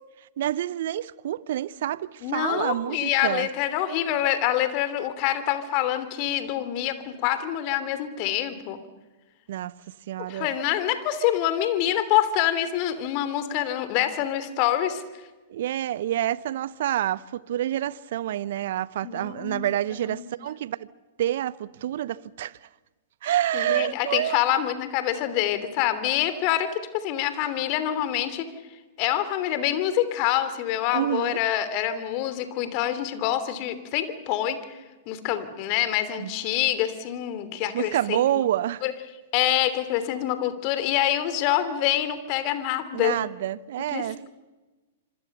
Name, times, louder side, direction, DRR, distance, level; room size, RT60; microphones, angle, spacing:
voice 1, 0.4-3.5 9.5-9.7 10.1-10.5 15.5-20.9 21.2-22.5 23.2-24.4 30.9-31.4 36.2-36.3 37.7-38.8 42.9-44.2, right 12 dB, 60° right, 0.7 m, -28 dB
voice 2, 2.2-8.8 10.3-15.0 19.0-19.6 20.1-20.3 23.2-28.4 29.0-34.8 35.1-38.4 38.8-38.9 39.3-43.2 43.9-44.3, left 12 dB, 45° left, 3.1 m, -26 dB
26.0 x 25.5 x 6.8 m
figure-of-eight pair, 110°, 0 cm